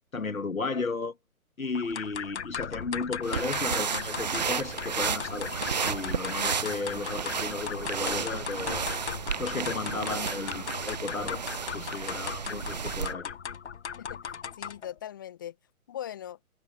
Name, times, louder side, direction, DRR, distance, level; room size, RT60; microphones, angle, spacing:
voice 1, 0.1-1.1 1.6-9.0 9.4-11.4 11.7-13.3, left 4 dB, 70° left, 2.1 m, -34 dB
sound 1, 1.7-14.9, left 7 dB, 50° left, 1.0 m, -38 dB
sound 2, 3.2-13.1, right 6 dB, 30° right, 0.6 m, -32 dB
voice 2, 14.0-15.6 15.9-16.4, left 11 dB, 15° left, 0.7 m, -40 dB
figure-of-eight pair, 135°, 43 cm